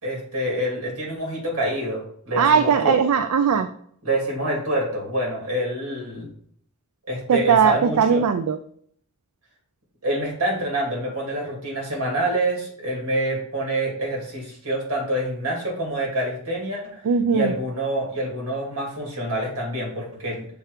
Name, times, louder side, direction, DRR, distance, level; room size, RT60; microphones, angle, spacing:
voice 1, 0.0-3.0 4.0-6.3 7.1-8.2 10.0-17.0 17.3-20.5, right 1 dB, 75° right, -1 dB, 2.7 m, -26 dB
voice 2, 2.4-3.7 7.3-8.6 17.0-17.5, right 6 dB, 90° right, 9 dB, 0.4 m, -19 dB
6.8 x 3.0 x 4.9 m, 0.63 s
head